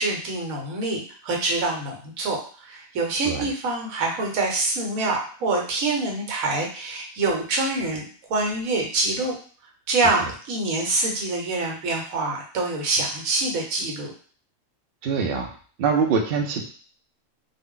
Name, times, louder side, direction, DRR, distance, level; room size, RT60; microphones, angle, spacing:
voice 1, 0.0-8.0 8.3-9.3 9.9-14.1, right 2 dB, 80° right, 0 dB, 1.2 m, -25 dB
voice 2, 15.0-15.5 15.8-16.7, right 5 dB, 65° right, 3 dB, 0.6 m, -23 dB
2.4 x 2.1 x 3.6 m, 0.43 s
omnidirectional pair, 1.4 m